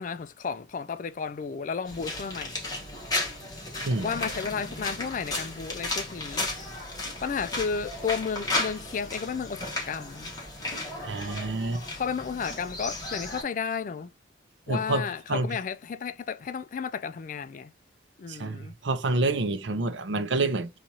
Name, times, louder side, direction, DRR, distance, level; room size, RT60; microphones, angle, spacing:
voice 1, 0.0-2.6 4.0-6.5 7.2-10.3 11.9-14.1 14.7-17.7 18.2-18.7, left 6 dB, 40° left, 0.3 m, -33 dB
sound 1, 1.9-13.4, left 2 dB, 20° left, 1.3 m, -34 dB
voice 2, 11.0-11.8 14.7-15.0 15.3-15.5 18.3-20.7, right 2 dB, 65° right, 0.6 m, -28 dB
4.0 x 2.5 x 2.8 m
head